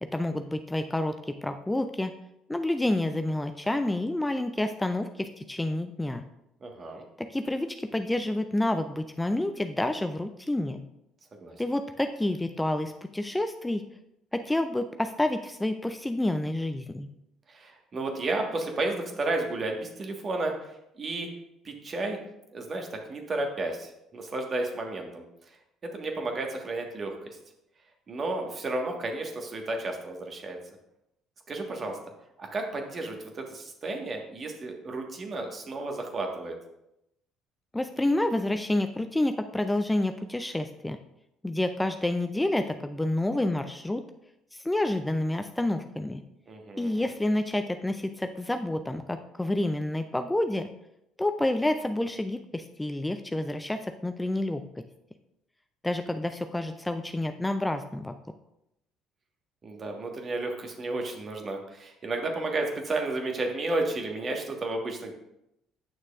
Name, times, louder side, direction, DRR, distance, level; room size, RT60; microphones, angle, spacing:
voice 1, 0.0-2.1 2.5-6.2 7.3-10.8 11.6-13.8 14.3-17.1 37.7-41.0 41.4-44.0 44.5-46.2 46.8-50.7 51.2-54.6 55.8-58.1, left 1 dB, 10° left, 7 dB, 0.4 m, -29 dB
voice 2, 6.6-7.0 11.4-11.6 17.5-20.7 21.0-21.3 21.6-22.2 22.5-25.2 25.9-27.1 28.1-30.6 31.5-32.0 32.4-36.6 46.5-47.1 59.6-65.1, right 2 dB, 40° right, 2 dB, 1.4 m, -32 dB
8.9 x 6.4 x 2.4 m, 0.84 s
hypercardioid pair, 60°, 0 cm